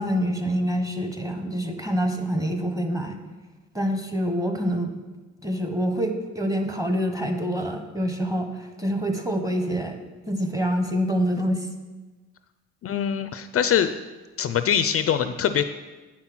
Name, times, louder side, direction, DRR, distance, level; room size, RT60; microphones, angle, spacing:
voice 1, 0.0-3.2 3.7-4.9 5.4-9.9 10.3-11.7, equal, 10° right, 5 dB, 1.2 m, -26 dB
voice 2, 12.8-13.9 14.4-15.6, left 8 dB, 50° left, 10 dB, 0.5 m, -23 dB
8.5 x 5.8 x 6.0 m, 1.2 s
cardioid pair, 90°, 30 cm